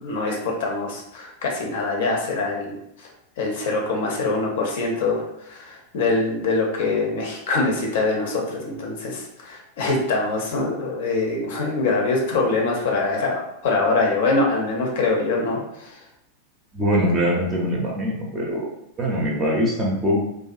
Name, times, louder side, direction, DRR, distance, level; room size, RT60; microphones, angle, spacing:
voice 1, 0.0-3.1 3.4-16.0, left 3 dB, 55° left, 0 dB, 0.5 m, -24 dB
voice 2, 16.7-18.7 19.0-20.2, equal, 20° right, -4 dB, 0.5 m, -22 dB
2.5 x 2.2 x 2.3 m, 0.79 s
figure-of-eight pair, 90°, 0 cm